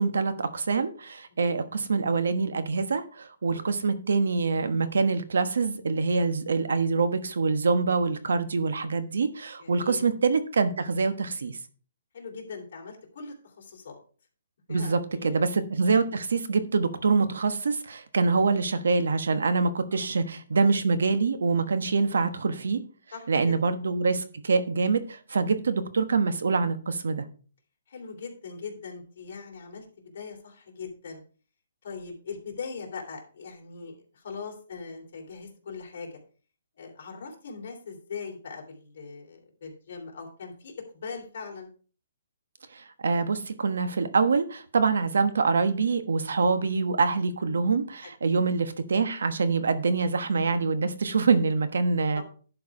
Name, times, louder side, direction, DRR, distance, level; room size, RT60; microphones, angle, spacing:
voice 1, 0.0-11.6 14.7-22.8 23.3-27.2 42.7-52.2, right 4 dB, 85° right, 11 dB, 1.2 m, -25 dB
voice 2, 3.5-3.8 9.6-10.0 12.1-14.0 14.7-15.4 19.9-20.2 23.1-23.6 27.9-31.2 31.8-36.2 36.8-41.7 46.5-46.6 48.2-48.4 52.1-52.2, left 5 dB, 50° left, 0 dB, 3.0 m, -41 dB
11.0 x 4.7 x 4.8 m, 0.39 s
hypercardioid pair, 165°, 0 cm